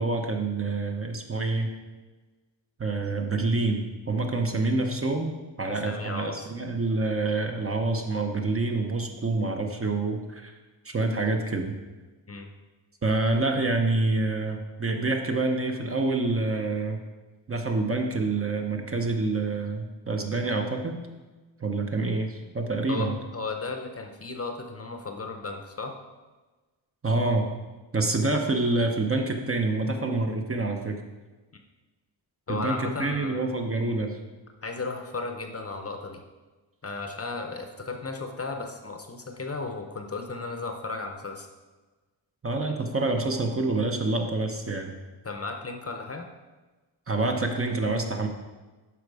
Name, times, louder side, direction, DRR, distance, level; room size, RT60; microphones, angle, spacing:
voice 1, 0.0-1.7 2.8-10.5 10.8-11.7 13.0-17.0 17.5-21.0 21.6-23.1 27.0-27.5 27.9-31.0 32.5-34.2 42.4-44.9 47.1-48.3, right 3 dB, 30° right, 3 dB, 0.8 m, -27 dB
voice 2, 5.6-6.5 12.3-12.5 22.9-25.9 32.5-33.5 34.6-36.2 36.8-41.5 45.2-46.3, left 3 dB, 30° left, 4 dB, 0.8 m, -35 dB
12.0 x 4.9 x 4.8 m, 1.2 s
wide cardioid pair, 180°, 45 cm